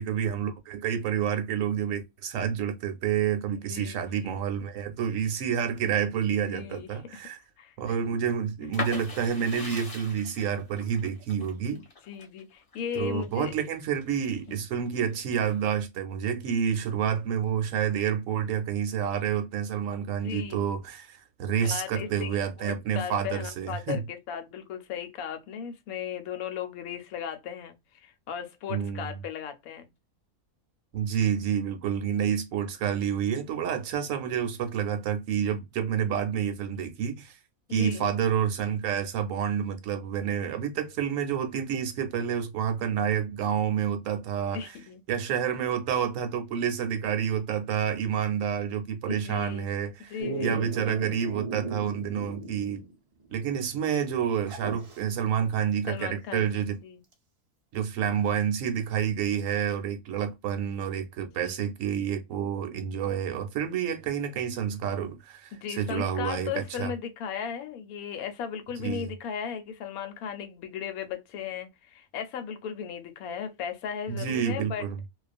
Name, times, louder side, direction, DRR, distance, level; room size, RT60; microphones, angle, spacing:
voice 1, 0.0-7.4 7.8-11.8 12.9-24.0 28.7-29.2 30.9-37.4 37.7-44.8 45.1-52.8 53.3-56.8 57.7-66.9 68.8-69.1 74.1-75.0, right 8 dB, 70° right, 1.0 m, -29 dB
voice 2, 3.5-4.3 6.4-7.2 7.6-8.0 11.7-13.5 14.5-14.6 20.2-20.6 21.6-27.7 28.0-29.9 37.7-38.0 44.5-45.0 49.1-49.7 50.1-50.7 55.9-57.0 61.3-61.6 65.5-74.8, left 8 dB, 80° left, 1.1 m, -36 dB
sound 1, 8.7-14.4 14.8-15.7, left 3 dB, 35° left, 0.6 m, -39 dB
Dog, 50.2-52.9 53.2-53.3 54.4-55.0 57.1-57.2, right 4 dB, 45° right, 0.4 m, -36 dB
2.4 x 2.3 x 2.4 m
omnidirectional pair, 1.5 m